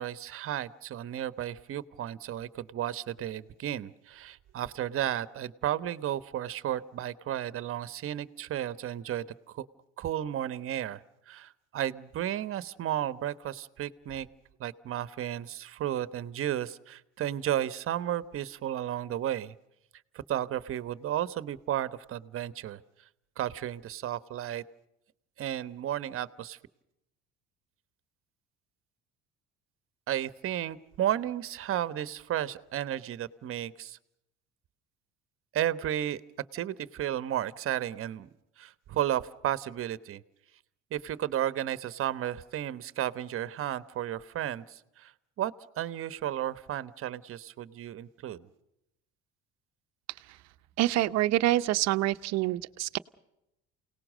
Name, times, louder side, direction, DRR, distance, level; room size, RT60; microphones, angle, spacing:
voice 1, 0.0-9.3 9.5-9.7 10.0-11.0 11.3-14.3 14.6-19.5 20.3-22.8 23.4-24.6 25.4-26.6 30.1-34.0 35.5-36.2 36.5-38.3 38.6-40.2 40.9-48.5, right 11 dB, 50° right, 15 dB, 1.1 m, -33 dB
voice 2, 50.8-53.0, right 15 dB, 65° right, 13 dB, 0.9 m, -26 dB
28.5 x 18.5 x 6.4 m, 0.85 s
cardioid pair, 115°, 29 cm